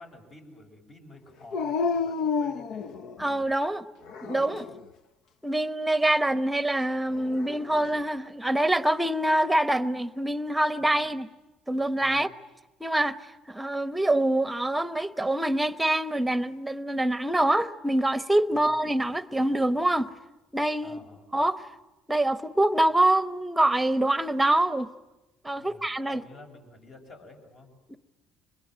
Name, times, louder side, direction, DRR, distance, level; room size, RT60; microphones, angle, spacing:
voice 1, 0.0-3.0 10.8-11.0 12.0-12.3 18.5-18.8 20.8-21.3 25.6-28.0, left 2 dB, 50° left, 7.0 m, -51 dB
Dog, 1.5-3.4 4.1-4.9 7.1-8.0, left 5 dB, 65° left, 0.9 m, -31 dB
voice 2, 3.2-3.9 4.2-4.7 5.4-11.3 11.7-12.3 12.8-13.2 13.5-20.1 20.5-21.0 21.3-21.6 22.1-24.9 25.4-26.2 27.9-28.0, right 1 dB, 10° right, 1.0 m, -25 dB
25.0 x 21.5 x 9.3 m
supercardioid pair, 95°, 0 cm